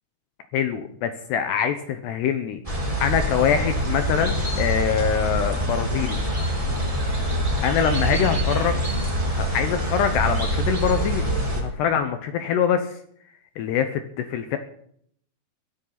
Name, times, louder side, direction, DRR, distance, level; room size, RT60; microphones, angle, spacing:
voice 1, 0.5-2.6 3.0-6.2 7.6-11.3 11.6-13.0 13.6-14.6, left 8 dB, 75° left, 8 dB, 2.7 m, -24 dB
sound 1, 2.6-11.6, equal, 10° right, 3.5 m, -25 dB
22.0 x 13.5 x 4.1 m, 0.64 s
omnidirectional pair, 5.7 m